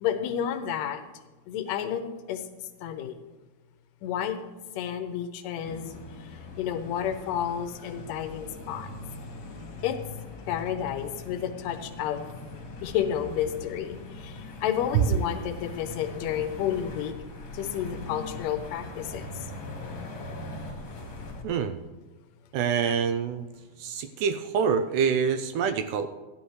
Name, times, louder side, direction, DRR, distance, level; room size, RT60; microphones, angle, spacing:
voice 1, 0.0-1.0 1.5-2.5 2.8-3.2 4.0-4.4 4.8-5.9 6.2-8.9 9.8-10.0 10.5-12.3 12.8-17.1 17.5-19.3, left 9 dB, 80° left, 8 dB, 2.2 m, -31 dB
sound 1, 5.6-21.4, left 2 dB, 50° left, 1.7 m, -41 dB
voice 2, 21.4-21.8 22.5-23.5 23.8-26.1, right 6 dB, 85° right, 10 dB, 1.8 m, -26 dB
14.5 x 10.5 x 3.1 m, 1.2 s
omnidirectional pair, 4.1 m